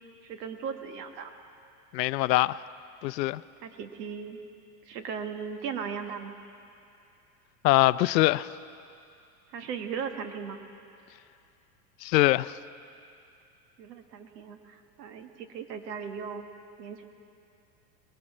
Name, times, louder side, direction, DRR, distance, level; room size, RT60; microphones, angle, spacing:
voice 1, 0.2-1.3 3.6-4.4 4.9-6.3 9.5-10.6 13.8-16.5 16.8-17.0, right 6 dB, 75° right, 1.5 m, -37 dB
voice 2, 1.9-2.6 3.0-3.4 7.6-8.5 12.0-12.6, left 18 dB, 80° left, 0.5 m, -23 dB
20.5 x 15.0 x 4.3 m
supercardioid pair, 135°, 49 cm